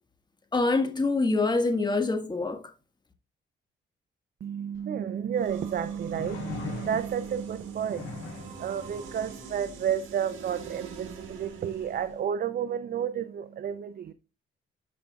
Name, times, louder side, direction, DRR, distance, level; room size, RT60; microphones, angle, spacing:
voice 1, 0.5-2.6, left 3 dB, 20° left, 1.6 m, -25 dB
voice 2, 4.4-14.1, right 8 dB, 50° right, 0.6 m, -31 dB
sound 1, 4.7-4.8 6.1-7.3 7.9-8.6 10.5-10.6, left 4 dB, 75° left, 1.5 m, -39 dB
sound 2, 5.3-12.3, right 5 dB, 80° right, 1.8 m, -44 dB
13.0 x 5.2 x 2.3 m
cardioid pair, 90°, 20 cm